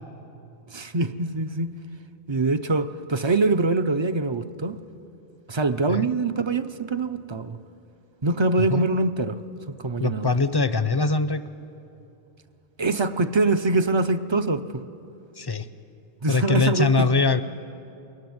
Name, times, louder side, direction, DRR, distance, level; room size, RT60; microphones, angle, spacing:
voice 1, 0.7-1.7 2.3-4.8 5.5-7.6 8.2-9.4 9.8-10.3 12.8-14.8 16.2-17.1, right 3 dB, 35° right, 0.5 m, -24 dB
voice 2, 10.0-11.4 15.4-15.7 16.3-17.4, left 3 dB, 25° left, 0.6 m, -22 dB
22.5 x 21.0 x 9.5 m
omnidirectional pair, 1.1 m